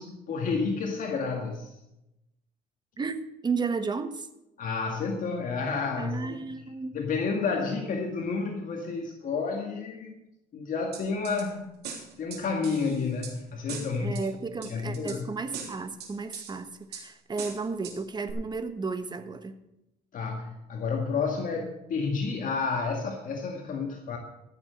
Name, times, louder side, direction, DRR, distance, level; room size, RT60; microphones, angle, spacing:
voice 1, 0.0-1.7 4.6-6.4 6.9-10.1 10.5-11.7 12.2-14.3 14.6-15.3 20.1-24.2, left 4 dB, 50° left, 1 dB, 2.0 m, -30 dB
voice 2, 3.0-4.3 6.0-7.0 14.0-19.6, right 4 dB, 25° right, 9 dB, 1.2 m, -33 dB
sound 1, 10.9-11.4 11.8-13.3 13.7-14.2 14.6-15.2 15.5-16.5 16.9-17.0 17.4-18.0 18.3-18.4, right 6 dB, 75° right, 3.3 m, -40 dB
14.5 x 7.2 x 6.5 m, 0.90 s
cardioid pair, 110°, 17 cm